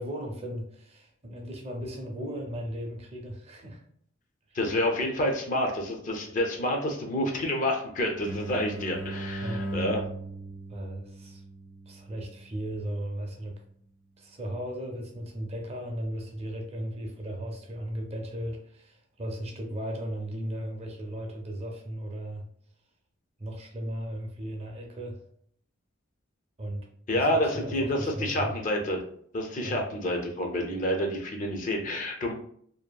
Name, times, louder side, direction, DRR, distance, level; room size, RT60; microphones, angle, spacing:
voice 1, 0.0-3.8 4.5-4.6 9.4-9.6 10.7-11.4 11.9-13.5 14.2-22.4 23.4-25.2 26.6-26.9 27.1-28.6 29.6-29.8, right 1 dB, 30° right, 1 dB, 0.5 m, -36 dB
voice 2, 4.5-10.0 27.1-29.0 29.3-32.3, left 1 dB, 40° left, 2 dB, 0.4 m, -28 dB
sound 1, 8.2-13.7, right 2 dB, 80° left, 0.9 m, -38 dB
2.6 x 2.4 x 2.2 m, 0.64 s
head